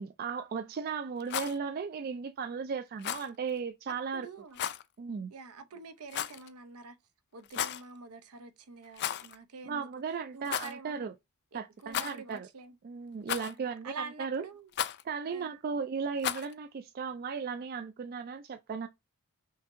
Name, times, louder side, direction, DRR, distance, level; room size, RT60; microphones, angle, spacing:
voice 1, 0.0-4.3 5.0-5.3 9.7-11.1 11.5-12.5 12.8-13.9 14.2-14.4 15.0-18.9, right 5 dB, 45° right, 0.3 m, -36 dB
Rattle, 1.2-1.6 3.0-3.3 4.5-4.8 6.1-6.5 7.4-7.8 8.9-9.4 9.6-9.7 10.4-10.7 11.9-12.4 13.3-13.7 14.7-15.0 16.2-16.5, left 10 dB, 50° left, 0.4 m, -34 dB
voice 2, 3.9-4.6 5.3-7.0 7.3-9.9 10.3-11.1 11.5-12.8 13.3-13.6 13.8-14.7 15.3-15.5, right 4 dB, 80° right, 0.7 m, -46 dB
5.7 x 2.7 x 2.6 m
head